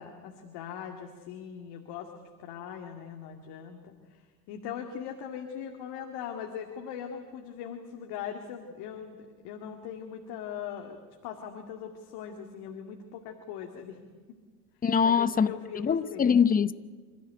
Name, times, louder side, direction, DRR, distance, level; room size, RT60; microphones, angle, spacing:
voice 1, 0.0-2.1 2.4-14.0 15.0-16.3, left 8 dB, 55° left, 2.3 m, -40 dB
voice 2, 14.8-15.5 15.8-16.7, left 6 dB, 20° left, 0.8 m, -23 dB
27.0 x 13.5 x 9.1 m
hypercardioid pair, 80°, 46 cm